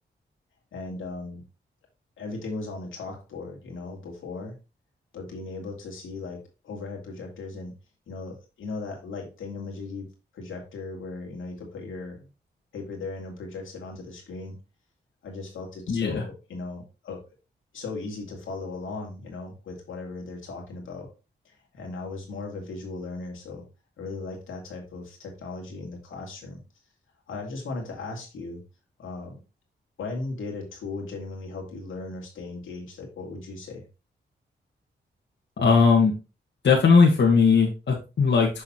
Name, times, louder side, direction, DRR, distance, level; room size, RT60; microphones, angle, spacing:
voice 1, 0.7-1.4 2.2-4.6 5.1-7.7 8.1-10.1 10.3-12.2 12.7-14.6 15.2-17.2 17.7-21.1 21.4-23.7 24.0-26.6 27.3-28.6 29.0-29.4 30.0-33.8, left 3 dB, 85° left, 0 dB, 2.3 m, -37 dB
voice 2, 15.9-16.2 35.6-36.1 36.6-38.6, left 5 dB, 65° left, -2 dB, 1.6 m, -19 dB
6.7 x 5.7 x 2.9 m, 0.31 s
cardioid pair, 55°, 20 cm